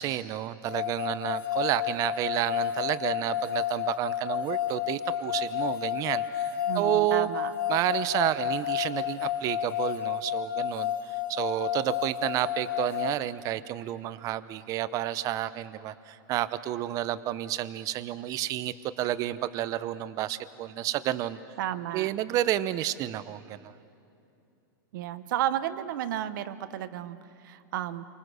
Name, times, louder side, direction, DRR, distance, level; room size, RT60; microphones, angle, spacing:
voice 1, 0.0-7.3 7.7-21.4 21.9-23.7, right 13 dB, 30° right, 14 dB, 0.8 m, -30 dB
sound 1, 0.7-13.2, left 11 dB, 65° left, 2.3 m, -31 dB
voice 2, 6.7-7.5 21.6-22.1 24.9-27.2 27.4-28.1, right 12 dB, 60° right, 12 dB, 1.2 m, -32 dB
29.5 x 25.0 x 6.3 m, 2.8 s
supercardioid pair, 155°, 12 cm